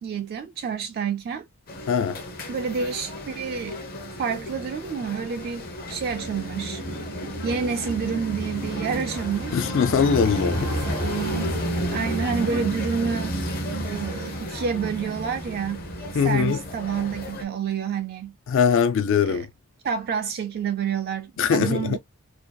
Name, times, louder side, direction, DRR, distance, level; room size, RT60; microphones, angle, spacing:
voice 1, 0.0-1.5 2.5-3.8 4.2-6.8 7.4-9.6 10.6-11.2 11.9-13.3 13.9-15.9 16.2-18.3 19.3-19.5 19.8-22.0, right 6 dB, 45° right, 0.3 m, -29 dB
sound 1, 1.7-17.5, equal, 45° left, 0.7 m, -31 dB
voice 2, 1.9-2.2 9.5-10.8 16.1-16.6 18.5-19.5 21.4-22.0, left 6 dB, 60° left, 0.4 m, -21 dB
sound 2, 8.1-12.5, right 1 dB, 85° right, 0.6 m, -37 dB
2.7 x 2.3 x 2.2 m
head